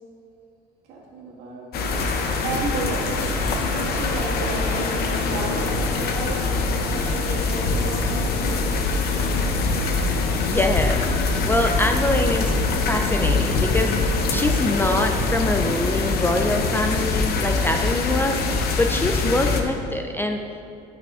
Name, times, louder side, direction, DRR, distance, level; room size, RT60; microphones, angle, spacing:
voice 1, 0.9-3.2 3.9-6.4 6.8-8.2, right 3 dB, 85° right, -4 dB, 1.8 m, -33 dB
sound 1, 1.7-19.6, left 3 dB, 65° left, 0.8 m, -23 dB
voice 2, 10.4-11.1 11.4-12.6 12.9-13.9 14.3-20.4, left 2 dB, 15° left, 4 dB, 0.3 m, -24 dB
12.0 x 5.9 x 2.4 m, 2.7 s
cardioid pair, 110°, 17 cm